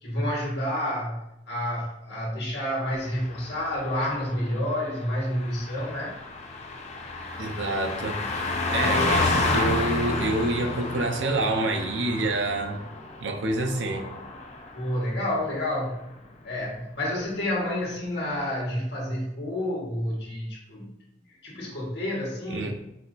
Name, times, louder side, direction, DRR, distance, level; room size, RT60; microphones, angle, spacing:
voice 1, 0.0-6.1 14.7-16.0 16.4-20.9 21.4-22.7, left 1 dB, 65° left, -4 dB, 1.3 m, -29 dB
Car passing by, 3.1-15.0 15.3-15.5, left 3 dB, 40° left, 0.5 m, -31 dB
voice 2, 7.4-8.2 8.7-12.8 13.2-14.1 22.5-22.7, right 2 dB, 85° right, 5 dB, 0.6 m, -27 dB
4.2 x 2.4 x 3.9 m, 0.87 s
head